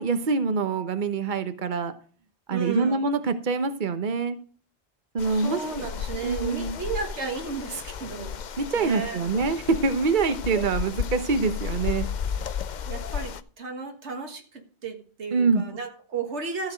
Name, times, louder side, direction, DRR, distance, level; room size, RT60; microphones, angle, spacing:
voice 1, 0.0-1.9 2.5-4.4 5.1-5.9 6.2-6.8 8.6-12.1 15.3-15.6, right 4 dB, 45° right, 9 dB, 1.1 m, -25 dB
voice 2, 2.5-3.0 5.3-8.5 8.8-9.2 10.5-10.7 12.9-16.7, right 5 dB, 85° right, 4 dB, 1.9 m, -34 dB
sound 1, 5.2-13.4, left 8 dB, 50° left, 0.6 m, -33 dB
14.0 x 7.1 x 5.1 m, 0.41 s
omnidirectional pair, 1.1 m